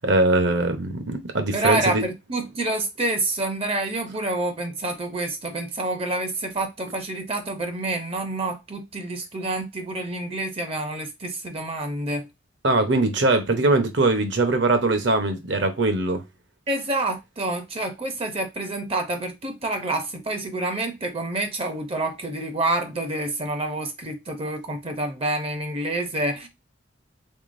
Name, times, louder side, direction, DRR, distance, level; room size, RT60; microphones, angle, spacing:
voice 1, 0.0-2.0 12.6-16.2, right 2 dB, 60° right, 0.7 m, -21 dB
voice 2, 1.5-12.3 16.7-26.5, right 2 dB, 30° right, 0.5 m, -28 dB
3.6 x 3.3 x 2.5 m
head